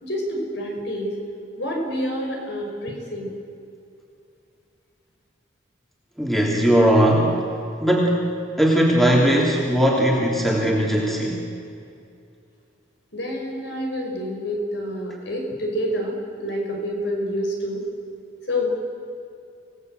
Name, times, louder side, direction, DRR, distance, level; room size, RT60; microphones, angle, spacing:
voice 1, 0.0-1.1 1.6-3.3 13.1-17.8 18.5-18.7, equal, 60° left, 1 dB, 5.6 m, -28 dB
voice 2, 6.2-7.4 7.8-8.3 8.6-11.4, equal, ahead, -2 dB, 3.2 m, -19 dB
27.5 x 18.5 x 8.0 m, 2.6 s
head